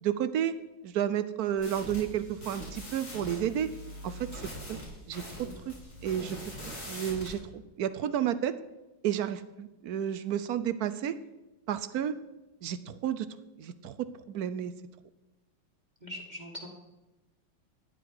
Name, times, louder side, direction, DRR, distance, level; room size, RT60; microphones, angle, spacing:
voice 1, 0.0-0.6 0.8-3.7 4.0-4.3 4.5-4.8 5.1-5.2 6.0-6.4 6.9-8.6 9.0-11.2 11.7-12.1 12.6-13.3 13.6-14.7, right 10 dB, 70° right, 13 dB, 0.9 m, -31 dB
sound 1, 1.6-7.3, equal, 55° left, 5.9 m, -43 dB
voice 2, 16.0-16.7, left 1 dB, 25° right, 0 dB, 1.5 m, -42 dB
14.5 x 10.0 x 4.8 m, 1.0 s
omnidirectional pair, 2.1 m